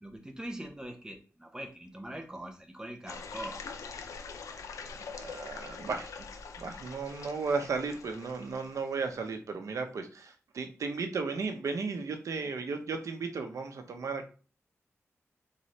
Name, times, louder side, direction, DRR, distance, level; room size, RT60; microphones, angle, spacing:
voice 1, 0.0-3.6, right 1 dB, 15° right, 1.0 m, -42 dB
sound 1, 3.1-9.2, left 5 dB, 90° left, 0.6 m, -44 dB
voice 2, 5.0-6.3 6.6-14.3, right 4 dB, 80° right, 0.8 m, -35 dB
4.1 x 3.8 x 3.2 m
cardioid pair, 75°, 5 cm